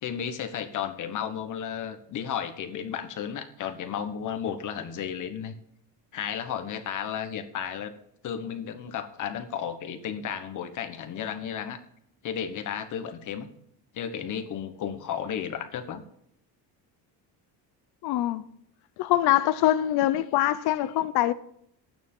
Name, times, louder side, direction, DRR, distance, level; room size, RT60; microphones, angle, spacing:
voice 1, 0.0-5.5 6.1-7.9 8.2-11.8 12.2-13.5 13.9-16.0, left 8 dB, 45° left, 1.3 m, -33 dB
voice 2, 18.0-18.4 19.0-21.3, left 13 dB, 65° left, 0.8 m, -23 dB
12.5 x 9.3 x 5.5 m
cardioid pair, 155°, 41 cm